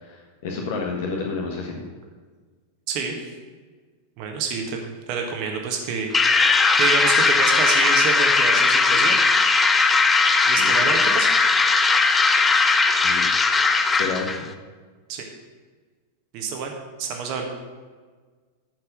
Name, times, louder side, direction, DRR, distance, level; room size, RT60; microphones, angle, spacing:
voice 1, 0.0-1.9 10.6-10.9 12.3-12.5 13.0-13.3 13.9-14.5, left 4 dB, 55° left, 0 dB, 1.5 m, -30 dB
voice 2, 2.9-3.3 4.2-6.4 6.8-9.2 10.5-11.4 15.1-15.3 16.3-16.7 17.0-17.4, right 5 dB, 45° right, 2 dB, 1.6 m, -28 dB
sound 1, 6.1-14.4, left 4 dB, 15° left, 0.7 m, -18 dB
10.5 x 6.5 x 6.4 m, 1.5 s
figure-of-eight pair, 90°, 0 cm